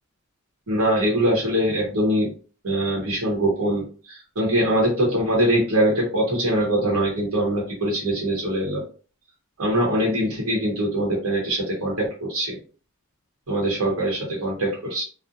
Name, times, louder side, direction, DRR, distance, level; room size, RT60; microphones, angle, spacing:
voice 1, 0.7-2.3 2.6-8.8 9.6-12.6 13.5-15.0, right 1 dB, 70° right, -3 dB, 0.9 m, -23 dB
2.6 x 2.0 x 2.5 m, 0.38 s
head